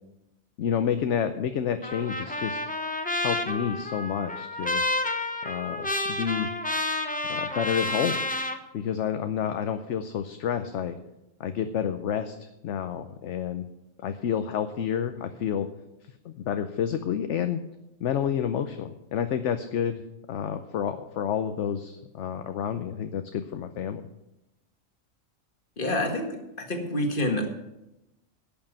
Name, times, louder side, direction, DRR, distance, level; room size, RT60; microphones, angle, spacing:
voice 1, 0.6-2.6 3.2-4.8 5.4-6.5 7.3-8.2 8.7-11.0 11.4-13.7 14.0-15.7 16.2-17.6 18.0-20.0 20.3-24.0, left 8 dB, 65° left, 8 dB, 1.0 m, -29 dB
Trumpet, 1.8-8.6, left 2 dB, 10° left, 0.8 m, -30 dB
voice 2, 25.8-27.5, left 1 dB, 40° left, 4 dB, 1.9 m, -28 dB
11.5 x 6.8 x 9.0 m, 0.92 s
omnidirectional pair, 1.4 m